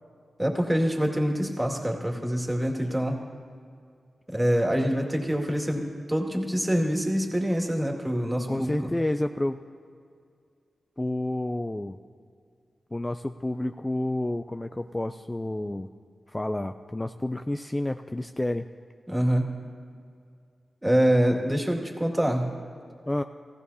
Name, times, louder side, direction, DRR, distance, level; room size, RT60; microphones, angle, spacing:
voice 1, 0.4-3.2 4.3-8.9 19.1-19.6 20.8-22.5, equal, 15° right, 1 dB, 2.2 m, -25 dB
voice 2, 8.5-9.6 11.0-12.0 12.9-15.9 16.3-18.7 23.1-23.2, left 1 dB, 20° left, 8 dB, 0.4 m, -30 dB
15.5 x 15.5 x 2.8 m, 2.3 s
cardioid pair, 45°, 0 cm